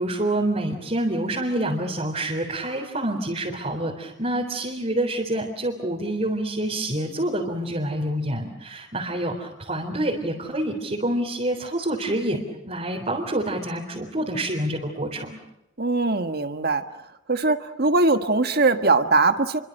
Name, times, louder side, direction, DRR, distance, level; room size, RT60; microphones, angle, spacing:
voice 1, 0.0-15.4, right 1 dB, 35° right, -2 dB, 4.0 m, -27 dB
voice 2, 15.8-16.8 17.3-19.6, right 3 dB, 50° right, 8 dB, 1.6 m, -21 dB
30.0 x 24.5 x 6.7 m, 0.88 s
head